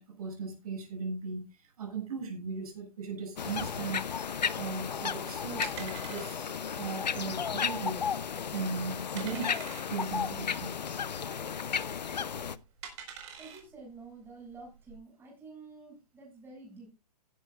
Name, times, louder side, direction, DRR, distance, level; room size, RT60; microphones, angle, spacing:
voice 1, 0.0-6.5 6.8-8.1 8.5-9.6 9.9-10.8, right 4 dB, 60° right, 7.3 m, -38 dB
sound 1, 3.4-12.6, left 7 dB, 85° left, 0.8 m, -34 dB
sound 2, 5.0-15.0, right 7 dB, 40° right, 5.1 m, -48 dB
voice 2, 13.4-16.9, right 3 dB, 10° right, 7.5 m, -49 dB
16.0 x 11.5 x 2.5 m
hypercardioid pair, 140°, 21 cm